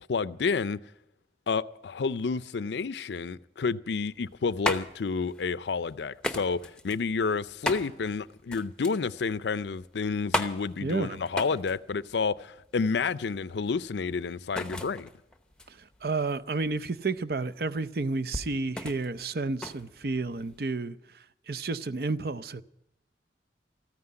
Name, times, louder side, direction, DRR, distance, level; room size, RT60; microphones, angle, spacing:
voice 1, 0.1-0.8 1.5-15.1, left 4 dB, 80° left, 0.5 m, -30 dB
sound 1, 4.1-20.7, left 1 dB, 5° left, 0.8 m, -37 dB
voice 2, 10.8-11.2 15.7-22.6, right 3 dB, 60° right, 0.6 m, -31 dB
14.0 x 9.6 x 9.8 m
head